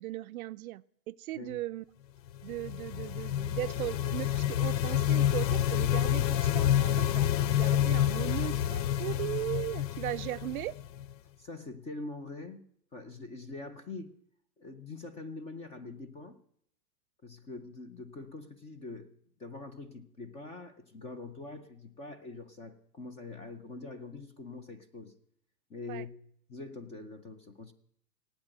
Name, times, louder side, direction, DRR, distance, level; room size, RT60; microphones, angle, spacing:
voice 1, 0.0-1.8 2.4-10.8 25.9-26.0, right 16 dB, 60° right, 14 dB, 0.5 m, -38 dB
sound 1, 2.4-11.1, left 11 dB, 80° left, 0.7 m, -28 dB
voice 2, 11.4-12.6 12.9-14.1 14.6-16.4 17.2-19.1 19.4-25.1 25.7-26.2 26.5-27.7, left 3 dB, 15° left, 12 dB, 0.5 m, -44 dB
17.0 x 9.0 x 8.9 m, 0.70 s
hypercardioid pair, 140°, 49 cm